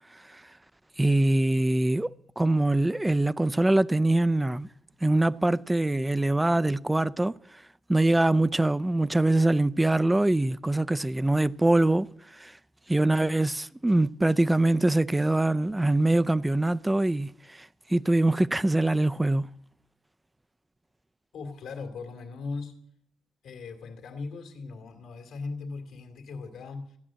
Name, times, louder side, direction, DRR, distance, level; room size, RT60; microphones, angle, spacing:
voice 1, 1.0-2.1 2.4-4.7 5.0-7.3 7.9-12.1 12.4-12.5 12.9-17.3 17.9-19.5, right 2 dB, 10° right, 0.4 m, -23 dB
voice 2, 21.3-22.8 23.4-27.0, left 4 dB, 75° left, 2.4 m, -38 dB
15.0 x 8.9 x 7.5 m
cardioid pair, 90°, 0 cm